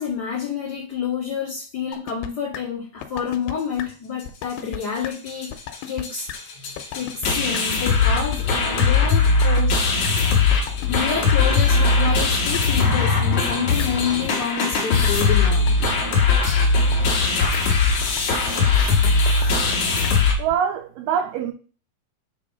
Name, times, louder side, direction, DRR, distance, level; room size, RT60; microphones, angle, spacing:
voice 1, 0.0-5.5 5.8-10.6 10.9-15.7, left 7 dB, 40° left, 1.5 m, -29 dB
sound 1, 1.9-2.3 2.5-2.6 3.0-3.5 3.8-3.9 4.3-4.8 5.0-5.1 5.5-6.0 6.3-6.4 6.8-7.3 7.5-7.6 8.0-8.5 8.8-8.9 9.3-10.1 10.5-11.4 11.8-12.6 13.0-13.5 13.8-13.9 14.3-14.8 15.0-15.1 15.5-16.0 16.3-16.4 16.8-17.3 17.5-17.6 18.0-18.5 18.8-18.9 19.3-19.8 20.0-20.1 20.5-20.6, left 11 dB, 85° left, 2.7 m, -33 dB
sound 2, 4.8-4.9 5.1-5.5 5.7-5.8 6.0-20.3, left 4 dB, 55° left, 1.9 m, -20 dB
voice 2, 20.4-21.5, right 8 dB, 85° right, 1.9 m, -24 dB
7.4 x 3.4 x 5.3 m
omnidirectional pair, 4.5 m